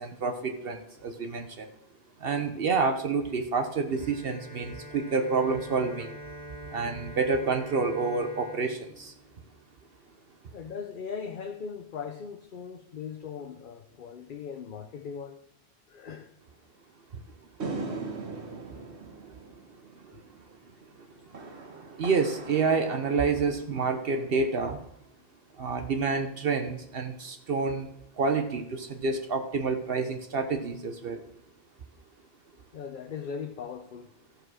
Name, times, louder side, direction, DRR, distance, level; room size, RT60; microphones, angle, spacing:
voice 1, 0.0-1.7 2.2-6.2 6.7-9.1 22.0-24.8 25.6-27.9 28.2-31.2, right 4 dB, 65° right, 1.0 m, -28 dB
Bowed string instrument, 3.9-9.9, equal, 25° right, 0.9 m, -45 dB
voice 2, 10.5-15.4 15.9-16.3 32.7-34.1, left 6 dB, 55° left, 0.8 m, -39 dB
sound 1, 17.6-24.1, right 3 dB, 85° right, 1.7 m, -40 dB
15.0 x 4.9 x 6.3 m
omnidirectional pair, 1.1 m